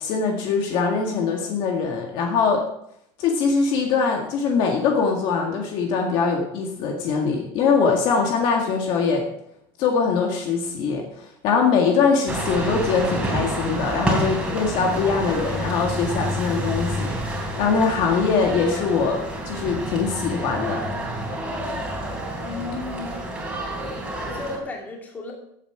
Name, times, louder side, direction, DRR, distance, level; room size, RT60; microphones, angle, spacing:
voice 1, 0.0-2.6 3.2-9.2 9.8-19.2 19.5-20.8, left 5 dB, 45° left, 1 dB, 1.9 m, -22 dB
sound 1, 12.3-24.6, right 1 dB, 10° right, 3.2 m, -28 dB
voice 2, 22.4-23.4 23.9-25.3, left 3 dB, 15° left, -1 dB, 2.8 m, -35 dB
15.5 x 8.6 x 4.7 m, 0.74 s
cardioid pair, 175°, 11 cm